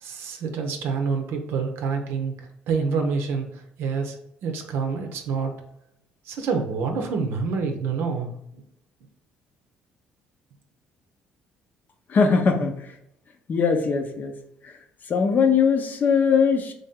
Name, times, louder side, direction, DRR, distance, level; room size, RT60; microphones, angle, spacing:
voice 1, 0.0-2.3 2.7-4.2 4.4-5.5 6.3-8.3, right 5 dB, 75° right, 4 dB, 0.6 m, -27 dB
voice 2, 12.1-12.9 13.5-14.3 14.6-14.7 15.1-16.7, left 5 dB, 50° left, 5 dB, 0.7 m, -21 dB
3.3 x 2.7 x 3.6 m, 0.76 s
supercardioid pair, 70°, 4 cm